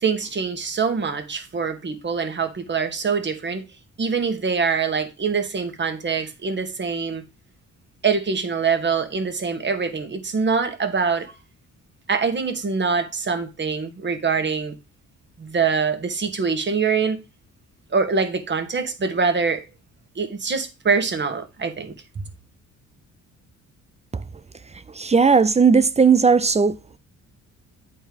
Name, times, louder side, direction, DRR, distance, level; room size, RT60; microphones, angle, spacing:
voice 1, 0.0-3.6 4.0-7.2 8.0-11.3 12.1-14.8 15.4-17.2 17.9-19.6 20.1-21.9, right 5 dB, 35° right, 1.7 m, -24 dB
voice 2, 25.0-26.8, right 5 dB, 20° right, 0.5 m, -16 dB
8.9 x 4.3 x 5.3 m
cardioid pair, 90°, 30 cm